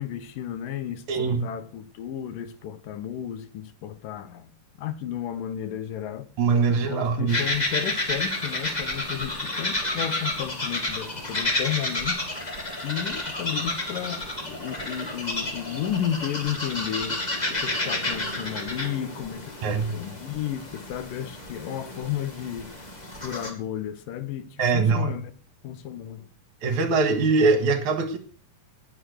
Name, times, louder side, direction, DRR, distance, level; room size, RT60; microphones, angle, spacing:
voice 1, 0.0-4.5 4.8-6.3 6.7-22.7 23.2-25.2 25.6-26.3, left 10 dB, 80° left, 2.8 m, -33 dB
voice 2, 1.1-1.4 6.4-7.4 19.6-19.9 24.6-25.1 26.6-28.2, right 4 dB, 65° right, 2.9 m, -22 dB
sound 1, 7.3-23.5, left 1 dB, 15° left, 2.0 m, -31 dB
19.0 x 7.2 x 6.5 m
omnidirectional pair, 3.8 m